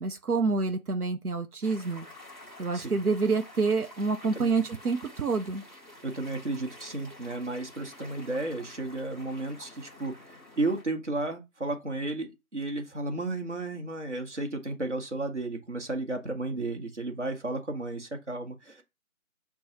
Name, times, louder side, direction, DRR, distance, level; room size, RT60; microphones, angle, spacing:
voice 1, 0.0-2.1 2.6-5.6, right 4 dB, 90° right, 0.7 m, -27 dB
sound 1, 1.6-10.8, left 1 dB, 35° right, 1.2 m, -49 dB
voice 2, 6.0-18.8, right 2 dB, 55° right, 1.1 m, -33 dB
6.2 x 2.3 x 2.9 m
figure-of-eight pair, 180°, 43 cm